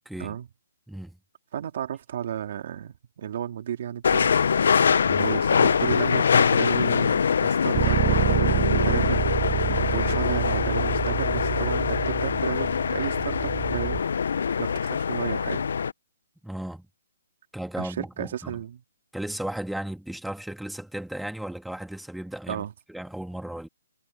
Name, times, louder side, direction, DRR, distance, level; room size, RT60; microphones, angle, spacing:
voice 1, 0.0-0.4 0.9-1.2 5.1-5.3 9.6-9.9 16.4-16.9 17.5-18.6 19.1-23.7, right 1 dB, ahead, 1.4 m, -35 dB
voice 2, 1.5-4.4 5.2-9.2 9.9-14.0 14.3-15.7 17.8-18.8 22.5-22.7, right 10 dB, 40° right, 2.7 m, -33 dB
sound 1, 4.0-15.9, left 6 dB, 60° left, 0.4 m, -23 dB
Bass guitar, 7.7-14.0, right 19 dB, 15° right, 1.2 m, -28 dB
hypercardioid pair, 170°, 0 cm